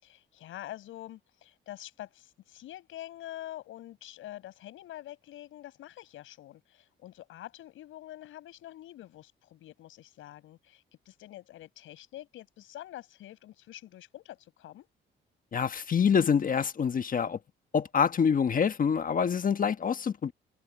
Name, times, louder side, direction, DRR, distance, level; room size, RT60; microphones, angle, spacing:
voice 1, 0.0-14.9, left 14 dB, 85° left, 7.8 m, -46 dB
voice 2, 15.5-17.4 17.7-20.3, left 7 dB, 45° left, 1.3 m, -26 dB
cardioid pair, 90°, 20 cm